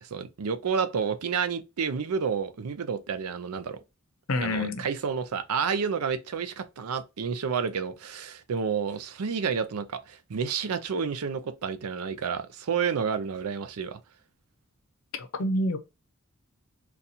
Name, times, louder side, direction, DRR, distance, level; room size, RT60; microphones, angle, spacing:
voice 1, 0.0-3.8 4.4-14.0, right 6 dB, 90° right, 0.5 m, -30 dB
voice 2, 4.3-4.9 15.1-15.8, left 1 dB, 65° left, 0.6 m, -27 dB
4.0 x 2.3 x 2.7 m
head